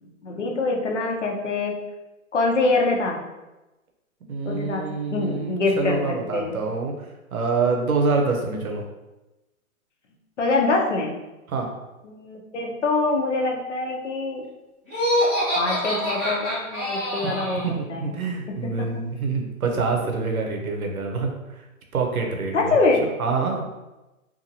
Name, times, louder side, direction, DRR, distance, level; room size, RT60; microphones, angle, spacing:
voice 1, 0.0-1.8 2.3-3.2 4.4-4.9 5.1-6.6 10.4-11.2 12.0-14.4 15.5-17.6 17.9-18.1 18.8-18.9 22.5-23.0, left 3 dB, 55° left, 0 dB, 0.6 m, -24 dB
voice 2, 4.3-8.8 11.5-11.7 17.2-17.3 17.6-21.6 21.9-22.8 23.2-23.6, right 4 dB, 75° right, 2 dB, 0.8 m, -26 dB
Laughter, 14.9-17.7, equal, 5° left, 0.7 m, -25 dB
2.8 x 2.5 x 2.7 m, 1.0 s
hypercardioid pair, 180°, 43 cm